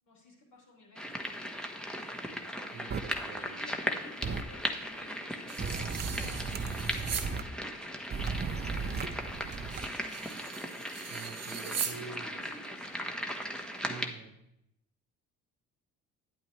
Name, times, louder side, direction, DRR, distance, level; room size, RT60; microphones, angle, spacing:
voice 1, 0.0-1.4 2.7-2.9 3.4-5.7 6.0-6.8 7.4-7.9 8.6-9.7 10.9-13.0 13.5-14.0, left 2 dB, 60° left, -2 dB, 3.5 m, -54 dB
sound 1, 1.0-14.1, equal, 5° left, 1.1 m, -38 dB
voice 2, 2.7-3.5 11.1-12.3 13.8-14.3, right 6 dB, 75° right, 7 dB, 1.1 m, -46 dB
sound 2, 2.9-3.0 4.2-4.4 5.6-7.4 8.1-9.9, right 5 dB, 30° right, 0.6 m, -35 dB
sound 3, 5.5-7.3 7.8-7.9 9.5-12.0, right 7 dB, 50° right, 1.1 m, -40 dB
9.4 x 8.8 x 3.2 m, 0.81 s
supercardioid pair, 80°, 32 cm